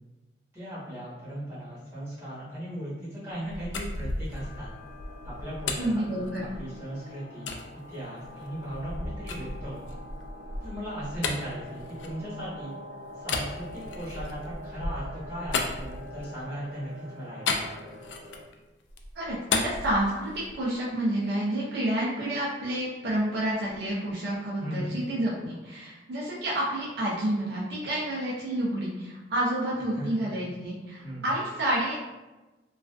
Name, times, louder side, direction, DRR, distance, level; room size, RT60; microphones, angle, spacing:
voice 1, 0.5-4.7 5.2-6.3 6.5-7.5 7.9-10.0 10.6-12.7 13.1-17.9 24.6-24.9 29.9-30.3 31.0-31.2, equal, 15° right, -12 dB, 1.3 m, -38 dB
sound 1, 3.3-6.8 7.5-7.6 8.2-12.6 13.2-16.4 17.5-18.5 18.9-20.7, left 3 dB, 85° left, 0.3 m, -34 dB
sound 2, 4.4-18.4, left 1 dB, 70° left, 0.9 m, -46 dB
voice 2, 5.8-6.4 19.1-32.0, right 1 dB, 65° right, -6 dB, 0.5 m, -29 dB
2.4 x 2.3 x 2.3 m, 1.1 s
head